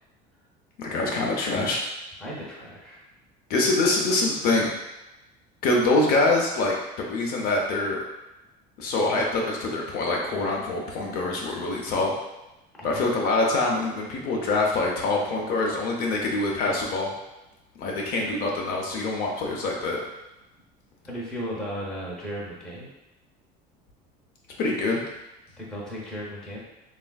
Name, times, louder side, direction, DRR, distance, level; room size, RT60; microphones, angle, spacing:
voice 1, 0.8-1.8 3.5-4.7 5.6-8.0 8.8-12.1 12.8-17.1 17.8-20.0 24.6-25.0, left 2 dB, 50° left, -1 dB, 0.5 m, -25 dB
voice 2, 2.2-3.0 12.8-13.1 21.0-22.9 25.6-26.6, equal, 5° left, -6 dB, 0.6 m, -35 dB
3.3 x 2.4 x 2.2 m, 0.98 s
cardioid pair, 150°, 21 cm